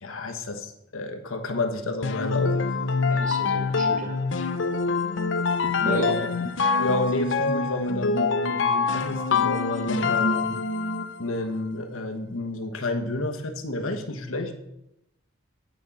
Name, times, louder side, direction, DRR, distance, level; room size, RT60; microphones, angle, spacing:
voice 1, 0.0-2.6 5.6-6.3 6.8-10.6 11.2-14.5, left 2 dB, 80° left, 6 dB, 1.2 m, -30 dB
sound 1, 2.0-11.2, left 4 dB, 60° left, 0.7 m, -25 dB
voice 2, 3.1-4.1 5.8-6.2, equal, 40° right, 2 dB, 1.8 m, -32 dB
9.1 x 5.5 x 7.4 m, 0.83 s
head